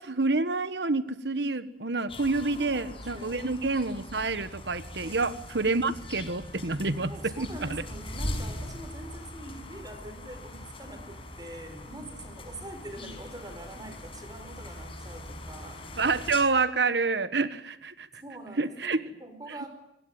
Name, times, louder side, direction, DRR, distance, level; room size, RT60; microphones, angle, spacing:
voice 1, 0.0-7.8 16.0-18.1 18.6-19.1, right 3 dB, 75° right, 13 dB, 1.4 m, -28 dB
sound 1, 2.1-16.4, left 1 dB, 30° left, 5.4 m, -41 dB
voice 2, 2.5-3.4 5.0-5.3 7.1-15.8 18.2-19.7, right 1 dB, 25° right, 8 dB, 4.9 m, -44 dB
26.5 x 20.0 x 9.2 m, 0.81 s
head